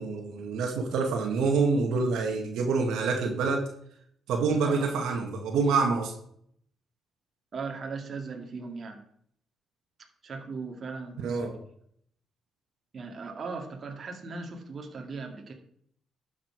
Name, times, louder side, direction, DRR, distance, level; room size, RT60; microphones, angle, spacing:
voice 1, 0.0-3.7 4.3-6.1 11.2-11.6, right 4 dB, 85° right, 2 dB, 1.8 m, -27 dB
voice 2, 4.6-4.9 7.5-9.0 10.2-11.6 12.9-15.5, right 4 dB, 45° right, 2 dB, 2.2 m, -38 dB
12.0 x 7.1 x 4.7 m, 0.66 s
cardioid pair, 90°, 0 cm